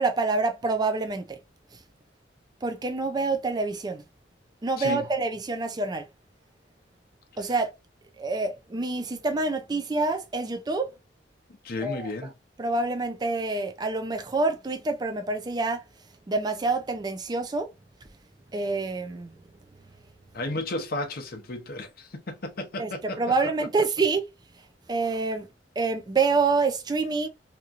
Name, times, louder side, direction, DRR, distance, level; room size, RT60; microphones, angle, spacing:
voice 1, 0.0-1.4 2.6-4.0 4.6-6.1 7.4-7.7 8.2-10.9 11.8-12.1 12.6-15.8 16.3-17.7 18.5-19.3 22.8-24.3 24.9-25.5 25.8-27.3, right 3 dB, 25° right, 0.4 m, -27 dB
voice 2, 4.8-5.1 11.6-12.3 20.3-23.2, left 2 dB, 55° left, 0.7 m, -33 dB
2.9 x 2.5 x 2.4 m
head